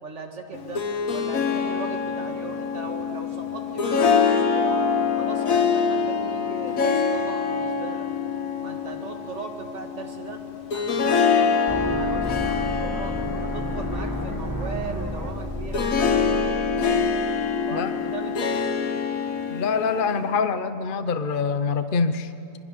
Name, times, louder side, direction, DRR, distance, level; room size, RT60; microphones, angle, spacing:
voice 1, 0.0-0.9 1.1-4.8 5.1-8.1 8.6-10.4 10.7-13.1 13.4-17.2 17.7-18.6, right 3 dB, 55° right, 3 dB, 2.3 m, -38 dB
Harp, 0.5-20.4, left 5 dB, 75° left, 1.8 m, -25 dB
sound 1, 11.7-17.6, right 1 dB, 15° right, 1.8 m, -32 dB
voice 2, 19.5-22.3, left 5 dB, 45° left, 9 dB, 0.9 m, -25 dB
27.0 x 21.5 x 6.9 m, 2.8 s
omnidirectional pair, 1.4 m